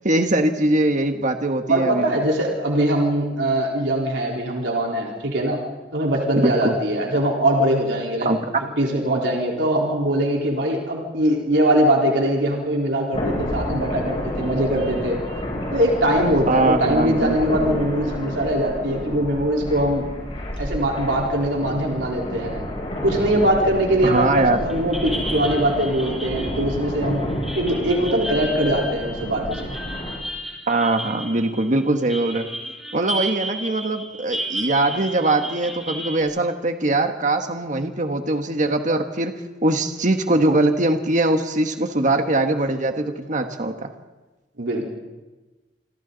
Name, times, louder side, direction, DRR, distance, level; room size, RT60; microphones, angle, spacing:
voice 1, 0.0-2.1 6.4-6.8 8.2-8.4 16.5-17.4 24.0-24.6 30.7-32.5 32.9-39.3 39.6-43.9, right 2 dB, 45° right, 6 dB, 1.4 m, -21 dB
voice 2, 1.7-5.6 5.9-8.3 8.8-15.2 15.7-20.1 20.6-22.6 23.0-27.2 27.6-29.8 44.6-44.8, right 1 dB, 85° right, -2 dB, 4.1 m, -22 dB
sound 1, 13.1-30.2, equal, 35° left, 7.8 m, -30 dB
sound 2, 24.1-24.4 24.7-36.2, right 1 dB, ahead, 6.9 m, -33 dB
27.5 x 26.0 x 4.1 m, 1.2 s
head